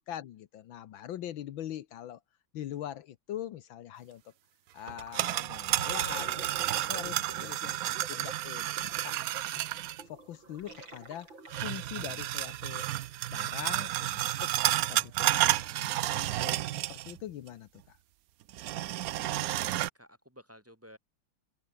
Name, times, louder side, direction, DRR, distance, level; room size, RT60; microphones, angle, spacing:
voice 1, 0.1-2.2 2.5-4.3 4.7-9.4 10.1-12.9 13.3-14.5 14.9-18.0, left 11 dB, 75° left, 1.7 m, -43 dB
sound 1, 4.9-10.0 11.5-17.2 17.5-17.6 18.5-19.9, right 14 dB, 85° right, 0.7 m, -31 dB
Gurgling, 5.0-5.2 5.5-12.0, right 3 dB, 70° right, 7.1 m, -47 dB
voice 2, 19.3-21.0, equal, 5° right, 3.7 m, -54 dB
omnidirectional pair, 2.2 m